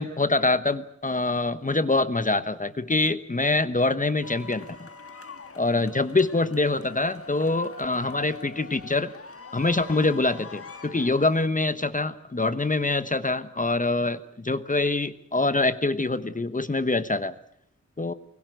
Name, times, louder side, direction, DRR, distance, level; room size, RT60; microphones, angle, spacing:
voice 1, 0.0-4.7 5.6-9.1 9.5-17.3 18.0-18.1, left 2 dB, 25° left, 13 dB, 1.1 m, -25 dB
sound 1, 4.2-11.5, left 4 dB, 50° left, 1.7 m, -44 dB
24.0 x 21.5 x 8.1 m, 0.67 s
wide cardioid pair, 85°, 30 cm